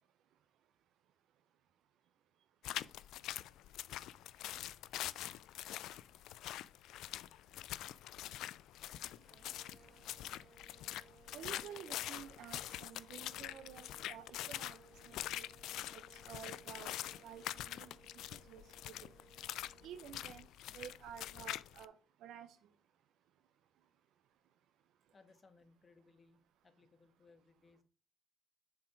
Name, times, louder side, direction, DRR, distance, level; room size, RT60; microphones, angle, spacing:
sound 1, 2.6-21.8, left 13 dB, 90° left, 0.3 m, -45 dB
Waves surf, 8.8-19.2, right 2 dB, 20° right, 2.2 m, -72 dB
sound 2, 9.3-20.4, right 6 dB, 55° right, 0.4 m, -64 dB
voice 1, 11.3-15.5 15.9-17.9 18.3-19.1 19.8-20.5 20.7-21.9 22.2-22.6, right 9 dB, 85° right, 9 dB, 0.8 m, -52 dB
voice 2, 25.1-27.8, left 4 dB, 35° left, 9 dB, 1.2 m, -66 dB
7.0 x 4.6 x 4.7 m, 0.36 s
cardioid pair, 90°, 0 cm